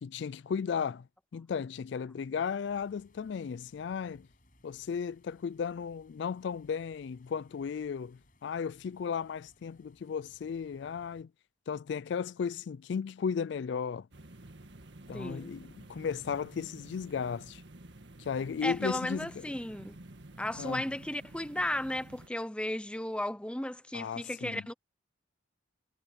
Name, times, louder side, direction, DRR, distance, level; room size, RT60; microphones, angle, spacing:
voice 1, 0.0-1.1 1.3-4.3 4.6-11.3 11.7-14.1 15.1-17.6 18.2-19.5 20.5-20.9 23.9-24.6, left 6 dB, 60° left, 0.3 m, -35 dB
sound 1, 2.6-11.2, left 1 dB, 45° left, 7.4 m, -65 dB
sound 2, 14.1-22.3, right 1 dB, 60° right, 1.8 m, -51 dB
voice 2, 15.1-15.5 18.6-20.0 20.4-24.7, left 1 dB, 5° left, 0.6 m, -35 dB
head